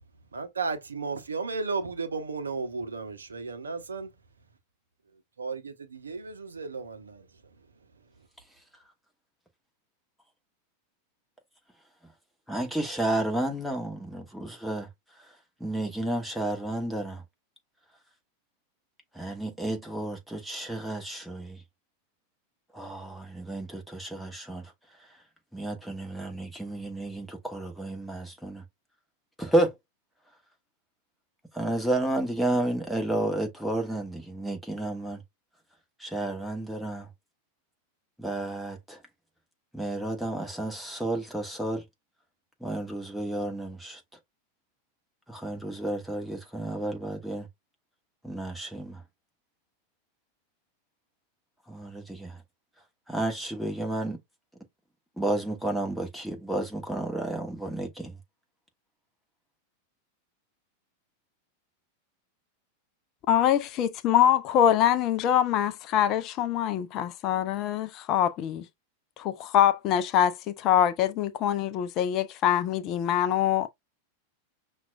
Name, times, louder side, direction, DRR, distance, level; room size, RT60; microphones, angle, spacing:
voice 1, 0.3-4.1 5.4-5.7 6.0-7.0, right 4 dB, 75° right, 0.6 m, -33 dB
voice 2, 12.5-14.9 15.2-17.2 19.1-21.6 22.7-24.7 25.0-25.1 25.5-28.6 29.4-29.7 31.5-35.2 36.0-37.1 38.2-39.0 39.7-41.8 42.6-44.0 45.3-47.5 48.2-49.0 51.7-52.4 53.1-54.2 55.2-58.2, right 1 dB, ahead, 1.0 m, -31 dB
voice 3, 63.3-68.6 69.2-73.7, left 10 dB, 35° left, 0.4 m, -24 dB
5.8 x 2.3 x 2.3 m
figure-of-eight pair, 90°, 0 cm